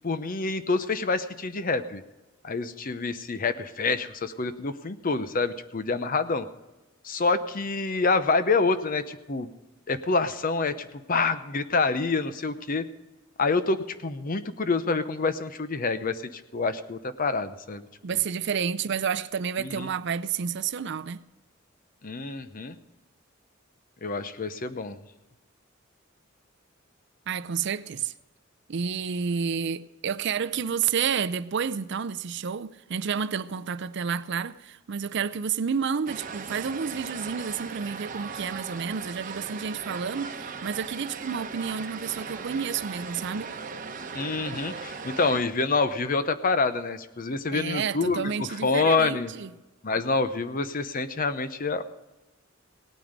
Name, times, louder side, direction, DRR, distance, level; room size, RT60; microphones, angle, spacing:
voice 1, 0.0-2.0 2.4-6.5 7.0-9.5 9.9-12.9 13.4-17.9 19.6-19.9 22.0-22.8 24.0-25.0 44.1-49.3 49.8-51.9, left 3 dB, 45° left, 0.8 m, -27 dB
voice 2, 18.0-21.2 27.3-28.1 28.7-43.5 47.5-49.5, right 6 dB, 60° right, 0.5 m, -30 dB
sound 1, 36.1-45.4, right 5 dB, 40° right, 1.0 m, -38 dB
18.0 x 9.2 x 5.1 m
head